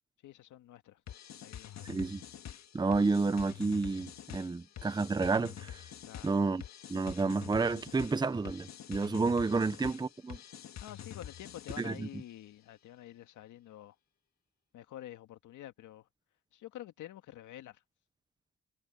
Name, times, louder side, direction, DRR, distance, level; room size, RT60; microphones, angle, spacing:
voice 1, 0.2-1.0 1.4-2.0 6.1-6.4 9.5-9.6 10.8-14.0 14.7-16.1 16.5-17.8, left 13 dB, 80° left, 1.9 m, -48 dB
sound 1, 1.1-12.1, left 10 dB, 65° left, 1.7 m, -47 dB
voice 2, 1.9-2.2 2.7-5.8 6.2-6.6 6.9-10.4 11.8-12.1, right 3 dB, 15° right, 0.7 m, -30 dB
cardioid pair, 90°, 30 cm